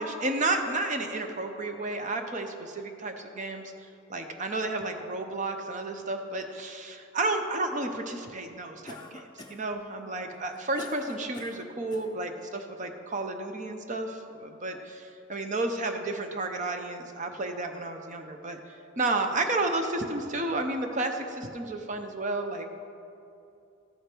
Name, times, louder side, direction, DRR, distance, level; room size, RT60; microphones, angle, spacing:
voice 1, 0.0-3.7 4.1-22.7, right 2 dB, 35° right, 6 dB, 0.6 m, -32 dB
Cough, 8.9-9.7 10.3-12.1, left 2 dB, 20° left, 0.5 m, -44 dB
13.5 x 5.0 x 4.5 m, 2.7 s
head